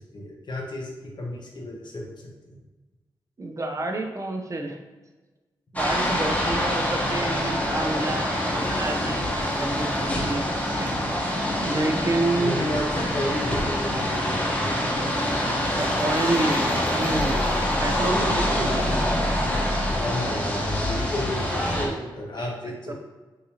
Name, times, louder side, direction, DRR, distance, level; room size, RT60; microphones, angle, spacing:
voice 1, 0.1-2.6 12.4-14.8 20.0-22.9, left 1 dB, 55° left, -1 dB, 0.8 m, -32 dB
voice 2, 3.4-4.8 5.7-10.5 10.8-11.1 11.6-12.6 15.7-17.4 17.8-18.7 21.4-22.1 22.4-22.9, right 2 dB, 35° right, 3 dB, 0.5 m, -29 dB
sound 1, 5.8-21.9, left 1 dB, 15° left, 0.9 m, -25 dB
3.6 x 2.7 x 2.8 m, 1.2 s
supercardioid pair, 45°, 9 cm